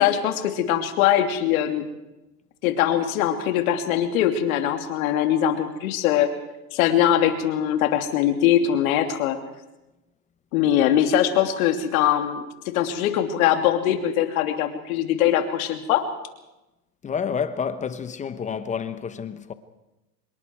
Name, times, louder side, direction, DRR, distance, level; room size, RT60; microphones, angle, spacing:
voice 1, 0.0-1.8 2.6-6.3 6.7-9.4 10.5-16.0, left 10 dB, 55° left, 3.1 m, -22 dB
voice 2, 17.0-19.5, left 6 dB, 15° left, 0.9 m, -29 dB
26.0 x 22.0 x 4.7 m
hypercardioid pair, 130°, 49 cm